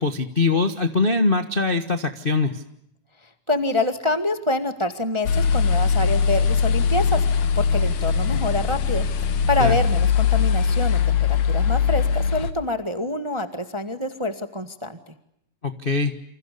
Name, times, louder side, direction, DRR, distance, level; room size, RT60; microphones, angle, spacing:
voice 1, 0.0-2.6 9.6-9.7 15.6-16.1, left 3 dB, 35° left, 7 dB, 0.8 m, -22 dB
voice 2, 3.5-15.1, left 2 dB, 15° right, 8 dB, 1.1 m, -26 dB
sound 1, 5.3-12.5, left 6 dB, 85° left, 3.0 m, -21 dB
29.0 x 27.5 x 6.8 m, 0.76 s
omnidirectional pair, 3.4 m